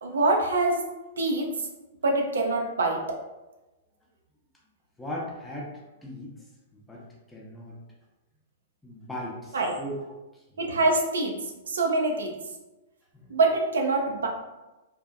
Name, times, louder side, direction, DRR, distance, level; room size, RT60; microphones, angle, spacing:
voice 1, 0.0-0.8 1.2-1.5 2.0-3.2 9.5-9.8 10.6-11.4 11.7-12.3 13.3-14.3, right 2 dB, 75° right, 2 dB, 0.4 m, -24 dB
voice 2, 5.0-5.7 6.0-6.3 6.7-7.7 8.8-10.0 10.6-10.8 13.1-13.3, equal, 5° left, -4 dB, 0.6 m, -38 dB
2.6 x 2.1 x 2.4 m, 1.0 s
figure-of-eight pair, 110°, 0 cm